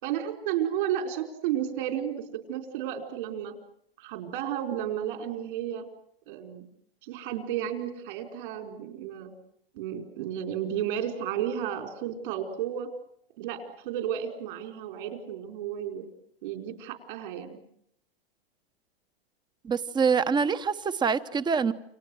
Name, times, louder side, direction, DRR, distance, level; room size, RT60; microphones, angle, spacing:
voice 1, 0.0-3.5 4.0-5.8 6.3-6.6 7.0-9.3 9.7-12.9 13.4-16.1 16.4-17.6, right 10 dB, 60° right, 4.8 m, -32 dB
voice 2, 19.6-21.7, right 5 dB, 15° right, 1.0 m, -25 dB
29.5 x 26.0 x 6.4 m
hypercardioid pair, 130°, 30 cm